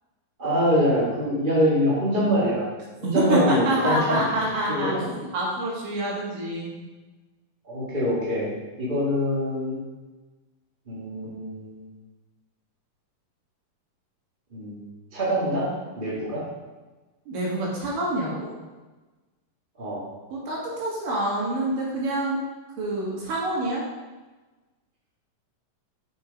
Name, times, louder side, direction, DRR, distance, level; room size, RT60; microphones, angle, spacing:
voice 1, 0.4-2.7 3.0-4.2 4.7-5.1 7.6-8.5 8.8-9.8 10.9-11.8 14.5-15.7 16.0-16.4 19.8-20.0, equal, 30° right, -7 dB, 0.9 m, -24 dB
voice 2, 3.1-4.9 5.3-6.7 17.3-18.5 20.3-22.4 22.8-23.8, right 1 dB, 70° right, -5 dB, 3.7 m, -26 dB
6.0 x 6.0 x 5.2 m, 1.2 s
omnidirectional pair, 4.0 m